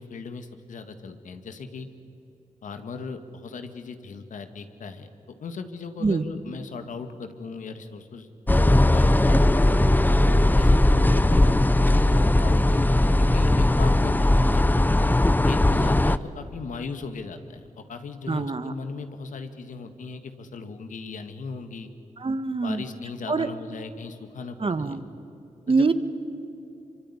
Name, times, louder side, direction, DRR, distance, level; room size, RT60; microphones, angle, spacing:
voice 1, 0.0-1.9 2.6-5.1 5.4-9.7 10.3-14.7 15.5-21.9 22.6-25.0 25.7-25.9, left 4 dB, 80° left, 8 dB, 1.9 m, -38 dB
sound 1, 8.5-16.2, left 1 dB, 15° left, 0.8 m, -19 dB
voice 2, 18.3-18.7 22.2-22.8 23.3-23.5 24.6-25.0 25.7-25.9, right 4 dB, 45° right, 11 dB, 1.5 m, -24 dB
25.0 x 24.5 x 9.8 m, 2.8 s
cardioid pair, 60°, 13 cm